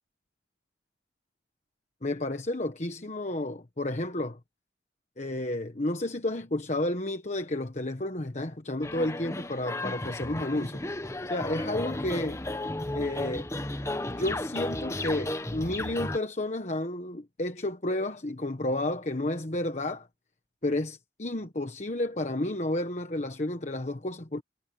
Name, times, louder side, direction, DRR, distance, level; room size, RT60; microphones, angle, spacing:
voice 1, 2.0-4.4 5.2-10.8 11.2-12.4 12.9-13.5 14.2-20.1 20.6-24.4, left 1 dB, 40° left, 1.3 m, -31 dB
sound 1, 8.8-16.2, left 1 dB, 15° left, 1.1 m, -34 dB
head